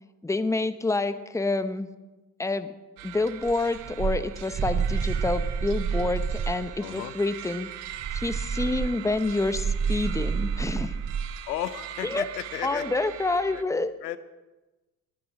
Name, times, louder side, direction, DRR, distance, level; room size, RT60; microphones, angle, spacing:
voice 1, 0.2-1.9 2.4-2.7 3.0-7.7 8.1-10.9 12.0-12.2 12.6-13.9, left 2 dB, 5° left, 12 dB, 0.9 m, -28 dB
sound 1, 3.0-13.6, right 12 dB, 60° right, 1.1 m, -41 dB
sound 2, 3.5-6.7 7.9-11.3, right 6 dB, 35° right, 1.0 m, -29 dB
voice 2, 6.8-7.1 11.5-12.9 13.5-13.6 14.0-14.2, left 12 dB, 90° left, 14 dB, 0.8 m, -34 dB
21.5 x 9.2 x 5.0 m, 1.1 s
hypercardioid pair, 65°, 47 cm